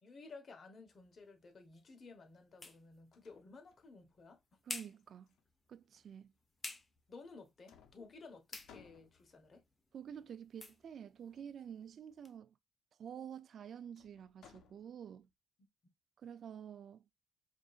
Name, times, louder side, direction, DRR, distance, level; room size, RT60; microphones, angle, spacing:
voice 1, 0.0-4.4 7.1-9.6, left 3 dB, 45° left, 1.1 m, -55 dB
sound 1, 0.9-12.4, left 3 dB, 25° left, 0.7 m, -54 dB
sound 2, 2.7-2.8 3.1-4.2 5.0-6.0 6.9-7.4 7.7-9.6 11.3-11.8 14.0-15.3, left 7 dB, 80° left, 0.5 m, -64 dB
voice 2, 4.6-5.3 5.7-6.3 9.9-12.6 13.0-15.3 16.2-17.1, right 8 dB, 60° right, 0.3 m, -49 dB
4.9 x 2.5 x 2.4 m
cardioid pair, 90°, 0 cm